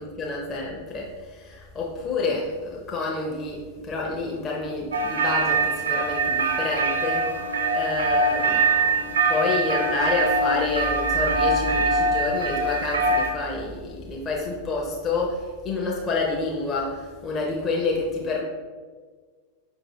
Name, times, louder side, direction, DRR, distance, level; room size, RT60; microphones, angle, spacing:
voice 1, 0.0-7.3 7.7-18.4, left 3 dB, 25° left, -3 dB, 0.6 m, -28 dB
sound 1, 4.9-13.3, right 3 dB, 70° right, 0.4 m, -23 dB
5.2 x 2.7 x 3.0 m, 1.5 s
figure-of-eight pair, 90°, 0 cm